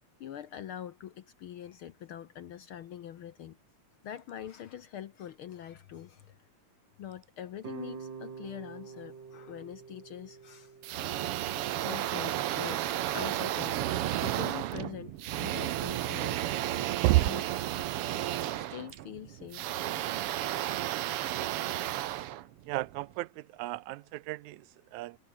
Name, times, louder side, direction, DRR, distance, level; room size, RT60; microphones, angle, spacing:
voice 1, 0.2-3.6 4.0-6.4 7.0-10.7 11.8-16.4 16.8-17.4 18.5-19.8, left 10 dB, 65° left, 1.4 m, -44 dB
sound 1, 7.6-12.7, right 5 dB, 40° right, 2.9 m, -47 dB
sound 2, 10.8-23.0, right 13 dB, 65° right, 1.5 m, -33 dB
voice 2, 22.7-25.2, right 18 dB, 85° right, 2.0 m, -30 dB
omnidirectional pair, 3.3 m